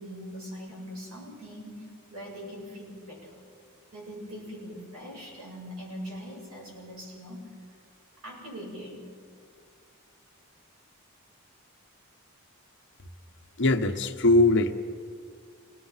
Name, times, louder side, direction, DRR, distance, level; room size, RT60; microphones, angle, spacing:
voice 1, 0.0-3.4 3.9-7.5 8.2-9.1, equal, 80° right, -3 dB, 7.7 m, -42 dB
voice 2, 13.6-14.7, left 2 dB, 55° left, 5 dB, 1.2 m, -21 dB
26.5 x 19.0 x 5.8 m, 2.1 s
head